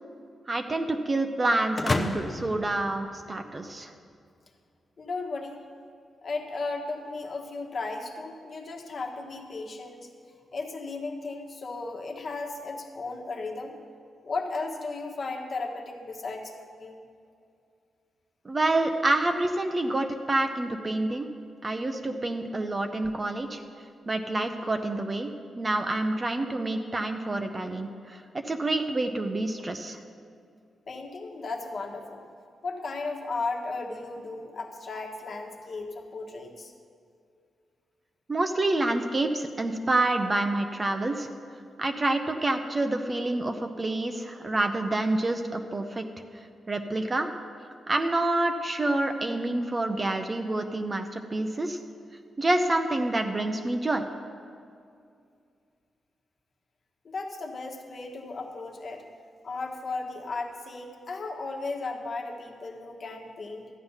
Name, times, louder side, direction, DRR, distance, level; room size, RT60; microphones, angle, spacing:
voice 1, 0.5-3.9 18.4-21.3 21.6-23.6 24.1-25.3 25.6-30.0 38.3-41.3 41.8-46.0 46.7-47.3 47.9-51.8 52.4-54.0, right 2 dB, 25° right, 6 dB, 0.6 m, -27 dB
sound 1, 1.8-3.7, left 3 dB, 30° left, 0.7 m, -31 dB
voice 2, 5.0-5.6 6.2-10.1 10.5-13.8 14.2-16.5 16.8-17.0 30.9-32.3 32.6-36.7 57.0-59.0 59.4-63.7, left 3 dB, 45° left, 2 dB, 1.3 m, -35 dB
13.5 x 9.4 x 5.6 m, 2.4 s
wide cardioid pair, 135°, 0 cm